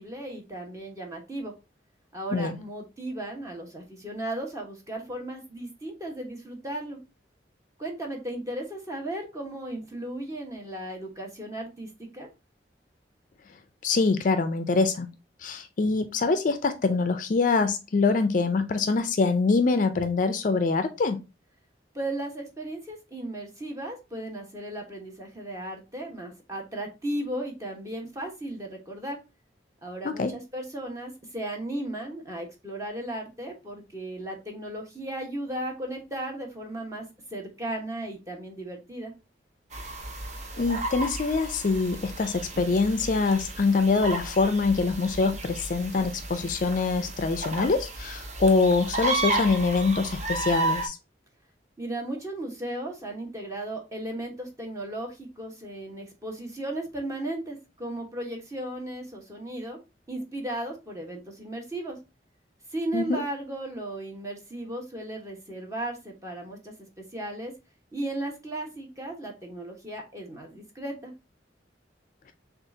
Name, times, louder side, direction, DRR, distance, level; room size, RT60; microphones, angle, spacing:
voice 1, 0.0-1.5 2.1-7.0 7.8-12.3 21.9-29.2 29.8-37.0 37.3-39.1 51.8-59.8 60.1-62.0 62.7-67.5 67.9-71.1, right 1 dB, 20° right, 1.2 m, -35 dB
voice 2, 13.8-15.1 15.4-21.2 30.0-30.3 40.6-51.0 62.9-63.2, left 4 dB, 50° left, 0.4 m, -24 dB
sound 1, 39.7-50.9, right 2 dB, 40° right, 0.8 m, -33 dB
6.4 x 2.4 x 2.7 m
head